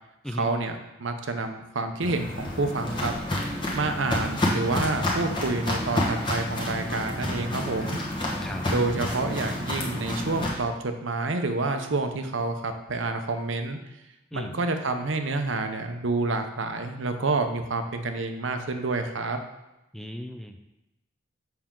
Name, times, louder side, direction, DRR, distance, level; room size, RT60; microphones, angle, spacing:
voice 1, 0.4-3.1 3.7-8.0 8.7-13.8 14.3-19.4, right 3 dB, 80° right, 6 dB, 0.7 m, -28 dB
Walk footsteps, 2.0-10.5, left 1 dB, 25° left, 1.2 m, -29 dB
voice 2, 19.9-20.6, equal, ahead, 5 dB, 0.4 m, -36 dB
7.2 x 5.9 x 3.7 m, 0.95 s
head